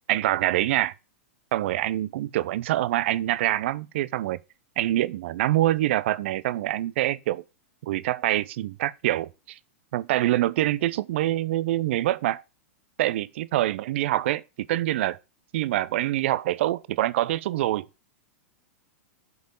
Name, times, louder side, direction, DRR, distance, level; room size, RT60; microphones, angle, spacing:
voice 1, 0.1-0.9 1.5-4.4 4.8-7.4 7.8-9.6 9.9-12.4 13.0-14.4 14.7-15.2 15.5-17.9, right 14 dB, 60° right, 0.7 m, -25 dB
8.0 x 5.2 x 6.9 m
hypercardioid pair, 105°, 7 cm